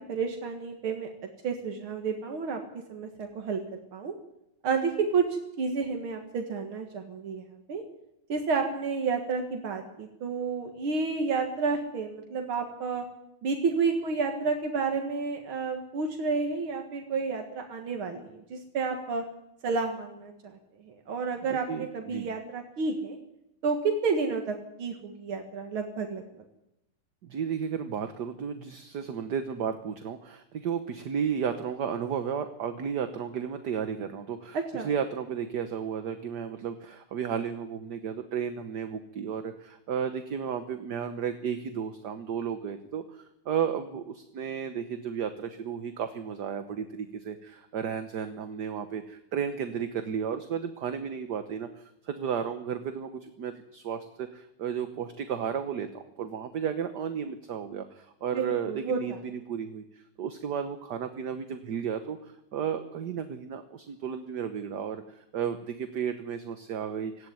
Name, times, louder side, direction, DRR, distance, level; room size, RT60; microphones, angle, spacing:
voice 1, 0.1-1.1 1.4-2.6 2.9-4.1 4.6-5.2 5.6-7.8 8.3-13.0 13.4-19.2 19.6-20.6 20.8-23.2 23.6-26.2 34.5-34.9 58.3-59.2, right 4 dB, 80° right, 3 dB, 2.6 m, -30 dB
voice 2, 21.5-22.3 27.2-65.0 65.3-67.3, right 7 dB, 55° right, 8 dB, 1.6 m, -33 dB
18.0 x 15.0 x 9.5 m, 0.85 s
omnidirectional pair, 2.3 m